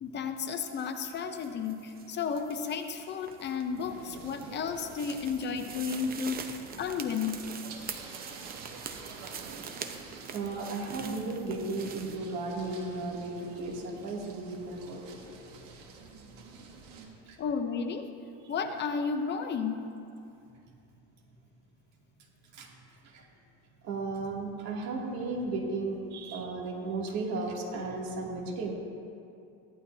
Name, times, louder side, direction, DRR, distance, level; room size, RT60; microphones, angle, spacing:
voice 1, 0.0-7.4 17.4-18.1 18.5-19.9, left 6 dB, 35° left, 7 dB, 0.7 m, -33 dB
sound 1, 0.6-12.2, right 7 dB, 30° right, 0.7 m, -45 dB
sound 2, 3.8-17.1, right 4 dB, 85° right, 1.7 m, -48 dB
voice 2, 10.3-15.2 17.3-17.4 22.5-22.7 23.0-23.3 23.8-28.7, right 3 dB, 65° right, -2 dB, 2.5 m, -35 dB
16.0 x 12.0 x 2.7 m, 2.6 s
cardioid pair, 135°, 30 cm